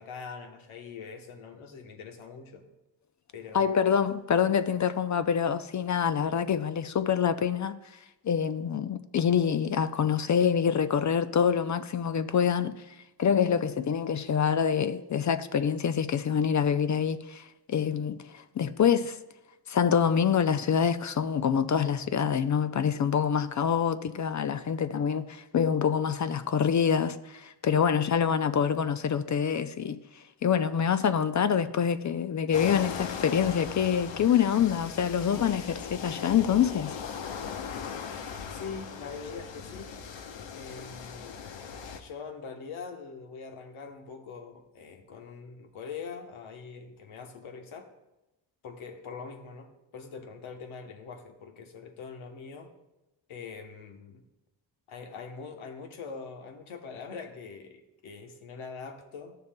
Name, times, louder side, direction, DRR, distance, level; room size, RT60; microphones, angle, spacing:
voice 1, 0.0-2.7 3.3-3.7 38.5-39.9 40.5-41.5 42.0-47.9 48.6-52.7 53.3-54.2 54.9-59.4, left 5 dB, 80° left, 1.1 m, -43 dB
voice 2, 3.5-7.8 8.2-12.8 13.2-19.2 19.7-30.0 30.4-37.0, left 7 dB, 40° left, 0.5 m, -26 dB
sound 1, 32.5-42.0, left 6 dB, 65° left, 0.9 m, -39 dB
13.0 x 6.7 x 2.2 m
supercardioid pair, 60°, 47 cm